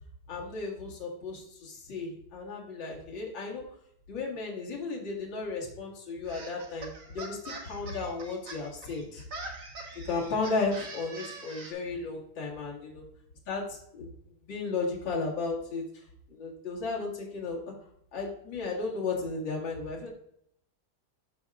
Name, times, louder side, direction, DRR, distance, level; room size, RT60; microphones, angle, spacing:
voice 1, 0.3-3.6 4.1-9.2 10.0-13.0 13.5-14.1 14.5-16.0 16.3-17.6 18.1-20.1, left 3 dB, 60° left, -3 dB, 2.5 m, -34 dB
sound 1, 6.3-11.7, right 3 dB, 45° right, 1.4 m, -43 dB
13.0 x 4.7 x 2.4 m, 0.72 s
omnidirectional pair, 2.3 m